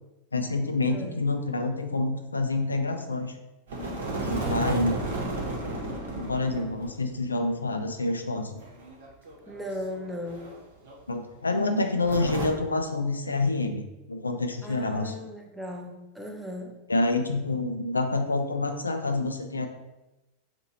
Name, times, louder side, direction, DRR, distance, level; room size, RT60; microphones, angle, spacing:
voice 1, 0.3-3.3 4.2-5.0 6.2-8.6 11.1-15.1 16.9-19.7, left 2 dB, 80° left, 6 dB, 0.3 m, -27 dB
sound 1, 3.7-6.9 7.2-7.3 8.6-10.6 10.8-10.9 12.0-12.5, right 2 dB, 65° right, 0.9 m, -33 dB
voice 2, 4.4-5.3 9.5-10.5 14.6-16.7, left 1 dB, ahead, 0 dB, 0.6 m, -38 dB
2.8 x 2.5 x 4.1 m, 1.0 s
figure-of-eight pair, 90°, 0 cm